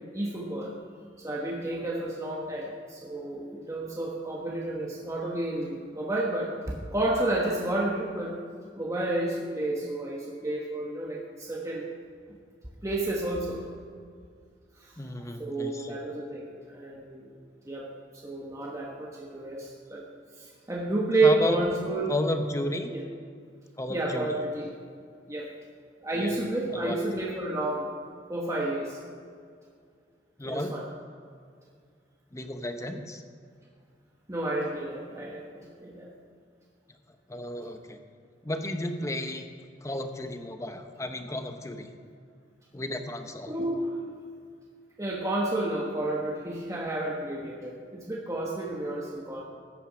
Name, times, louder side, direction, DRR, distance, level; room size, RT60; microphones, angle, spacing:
voice 1, 0.1-0.7 1.2-8.4 8.8-11.9 12.8-13.6 14.8-14.9 15.4-17.3 17.6-17.9 18.2-20.0 20.4-22.1 22.9-23.0 23.9-24.7 25.3-25.5 26.0-27.9 28.3-29.0 30.4-30.8 34.3-36.1 43.5-43.9 45.0-49.4, right 2 dB, 20° right, -2 dB, 1.2 m, -30 dB
voice 2, 15.0-16.0 21.2-21.6 22.1-22.9 23.8-24.4 26.1-26.3 26.7-27.0 30.4-30.7 32.3-33.2 37.3-38.0 38.4-39.5 39.8-41.9 42.7-43.5, left 1 dB, 15° left, 6 dB, 0.9 m, -33 dB
14.0 x 9.2 x 5.1 m, 2.2 s
head